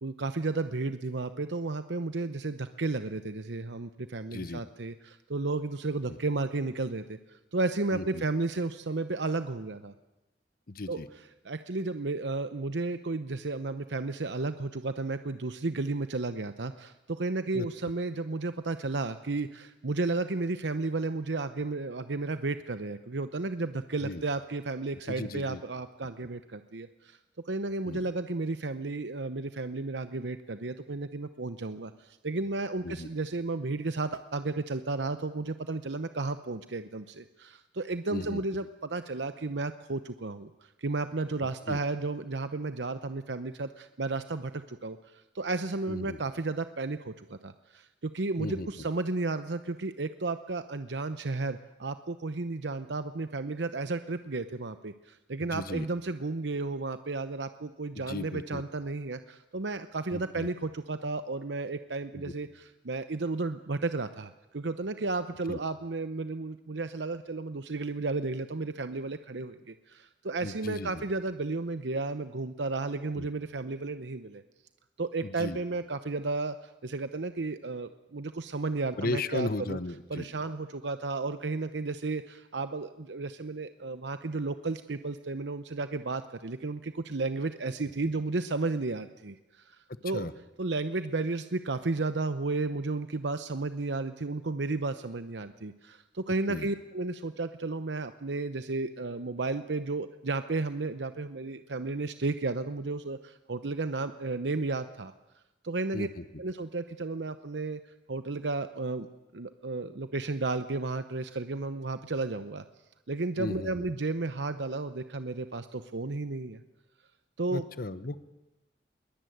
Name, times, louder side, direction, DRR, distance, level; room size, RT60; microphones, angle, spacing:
voice 1, 0.0-9.9 10.9-11.0 11.4-27.2 27.4-74.4 75.0-79.8 80.1-89.8 90.0-90.3 90.6-105.1 105.6-106.1 106.4-107.8 108.1-109.1 109.3-112.6 113.1-116.6 117.4-117.6, right 3 dB, 75° right, 11 dB, 0.9 m, -33 dB
voice 2, 4.3-4.6 6.1-6.2 7.9-8.2 10.7-11.1 17.5-17.7 24.0-24.2 25.1-25.6 27.8-28.1 32.8-33.1 38.1-38.4 41.4-41.8 45.9-46.2 48.4-48.7 55.5-55.9 57.9-58.6 60.1-60.5 62.1-62.3 65.5-65.6 70.4-71.0 73.2-73.3 75.2-75.6 79.0-80.4 90.0-90.3 96.5-96.7 105.9-106.2 113.4-113.8 117.5-118.2, left 2 dB, 55° left, 14 dB, 1.1 m, -36 dB
22.0 x 20.5 x 9.4 m, 1.0 s
head